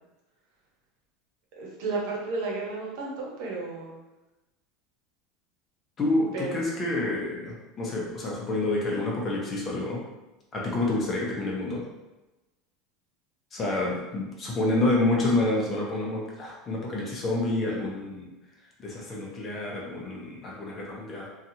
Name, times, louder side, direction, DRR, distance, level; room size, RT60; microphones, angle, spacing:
voice 1, 1.6-4.0 6.3-6.6, right 3 dB, 65° right, -3 dB, 0.9 m, -32 dB
voice 2, 6.0-10.0 10.5-11.8 13.5-18.3 18.8-21.3, left 2 dB, 25° left, -3 dB, 0.7 m, -28 dB
2.8 x 2.4 x 2.8 m, 1.1 s
supercardioid pair, 145°, 0 cm